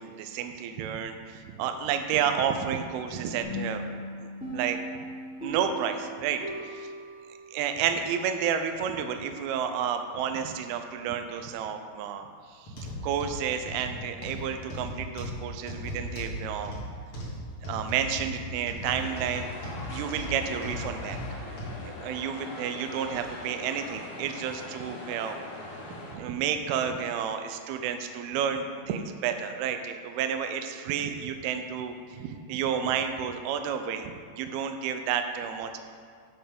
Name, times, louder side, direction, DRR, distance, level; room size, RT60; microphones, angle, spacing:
voice 1, 0.0-3.8 4.2-4.8 5.4-6.4 6.7-6.9 7.5-12.3 12.6-16.7 17.7-19.5 19.8-21.2 21.8-25.4 26.1-35.8, right 8 dB, 85° right, 7 dB, 2.3 m, -31 dB
sound 1, 3.4-8.1, equal, 5° right, 0.7 m, -39 dB
sound 2, 12.7-21.8 22.3-22.5 23.1-23.2, left 1 dB, 50° left, 1.7 m, -37 dB
sound 3, 18.8-26.2, left 2 dB, 75° left, 3.7 m, -41 dB
7.6 x 6.8 x 5.2 m, 2.1 s
omnidirectional pair, 5.0 m